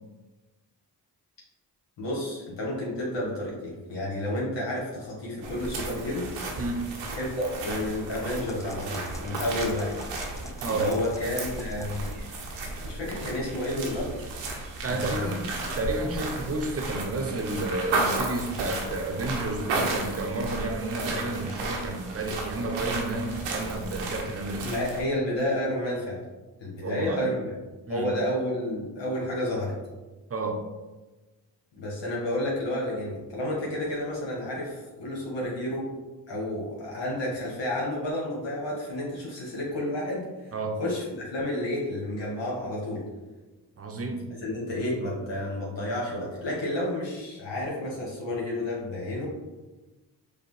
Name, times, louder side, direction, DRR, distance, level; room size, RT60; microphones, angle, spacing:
voice 1, 2.0-6.3 7.1-10.0 10.7-12.1 12.6-14.3 14.9-15.3 24.6-26.2 26.6-27.5 27.9-29.8 31.8-35.9 36.3-43.0 44.4-49.3, left 1 dB, 70° left, -4 dB, 1.2 m, -31 dB
sound 1, 5.4-25.0, right 2 dB, 85° right, 0.8 m, -34 dB
voice 2, 6.6-6.9 10.6-10.9 14.8-15.5 15.8-24.7 26.8-27.3 27.9-28.1 30.3-30.6 40.5-40.8 43.8-44.3, right 2 dB, 30° right, 4 dB, 0.7 m, -31 dB
sound 2, 8.3-12.3, left 2 dB, 10° left, 0.4 m, -48 dB
5.0 x 2.2 x 3.2 m, 1.2 s
supercardioid pair, 45°, 45 cm